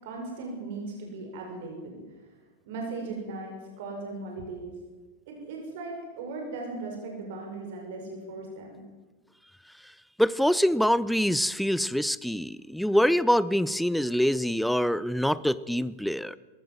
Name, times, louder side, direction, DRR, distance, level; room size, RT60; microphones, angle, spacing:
voice 1, 0.0-2.0 2.6-4.7 5.3-8.8, right 3 dB, 50° right, 1 dB, 6.5 m, -38 dB
voice 2, 10.2-16.4, equal, ahead, 18 dB, 0.6 m, -25 dB
21.0 x 18.5 x 7.7 m, 1.3 s
figure-of-eight pair, 90°, 0 cm